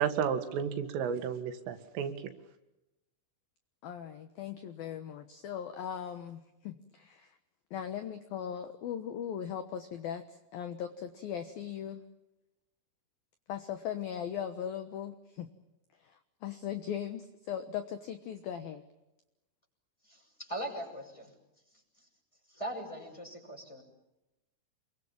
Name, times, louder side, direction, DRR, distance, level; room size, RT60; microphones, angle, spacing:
voice 1, 0.0-2.1, right 8 dB, 80° right, 8 dB, 4.3 m, -32 dB
voice 2, 3.8-7.3 7.7-12.0 13.5-15.5 16.4-18.8, left 9 dB, 70° left, 8 dB, 2.3 m, -39 dB
voice 3, 20.1-21.3 22.5-23.8, right 1 dB, 5° left, 2 dB, 5.8 m, -40 dB
28.5 x 23.0 x 7.3 m, 0.95 s
omnidirectional pair, 5.8 m